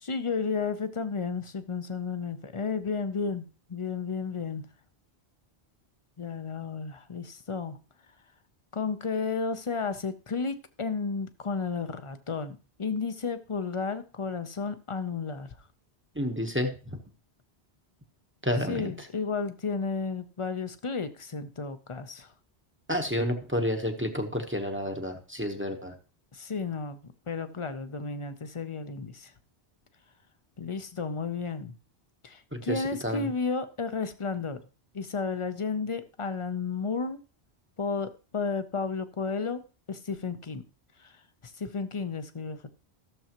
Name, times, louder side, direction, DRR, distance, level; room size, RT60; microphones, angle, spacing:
voice 1, 0.0-4.7 6.2-7.8 8.7-15.5 18.7-22.3 26.3-27.0 27.3-29.3 30.6-31.7 32.2-34.6 34.9-37.2 37.8-39.6 39.9-40.6 41.0-41.1 41.4-42.7, left 5 dB, 35° left, 0.7 m, -32 dB
voice 2, 16.2-16.7 18.4-18.9 22.9-25.9 32.5-33.3, equal, 10° right, 0.9 m, -30 dB
14.5 x 6.9 x 3.0 m
omnidirectional pair, 1.1 m